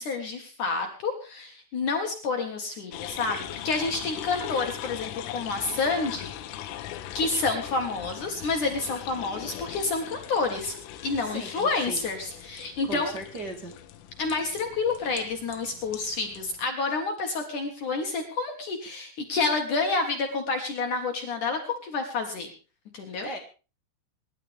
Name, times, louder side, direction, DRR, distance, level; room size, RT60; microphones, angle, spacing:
voice 1, 0.0-6.3 7.1-10.7 11.0-13.2 14.2-22.5 22.9-23.3, left 3 dB, 55° left, 3 dB, 2.3 m, -29 dB
sound 1, 2.9-16.7, left 11 dB, 85° left, 3.7 m, -40 dB
voice 2, 8.0-8.4 11.2-12.0 12.9-13.7 23.2-23.4, right 1 dB, 55° right, 2 dB, 1.1 m, -38 dB
26.0 x 11.0 x 3.5 m, 0.34 s
omnidirectional pair, 5.7 m